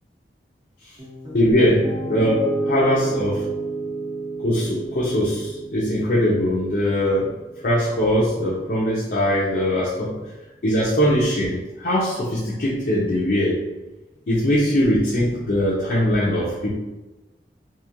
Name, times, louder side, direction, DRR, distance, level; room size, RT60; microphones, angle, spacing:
Piano, 1.0-9.1, right 2 dB, 30° right, 0.9 m, -31 dB
voice 1, 1.3-3.5 4.4-7.3 7.6-10.2 10.6-13.6 14.3-16.7, equal, 55° left, -7 dB, 0.6 m, -21 dB
2.9 x 2.7 x 2.5 m, 1.1 s
head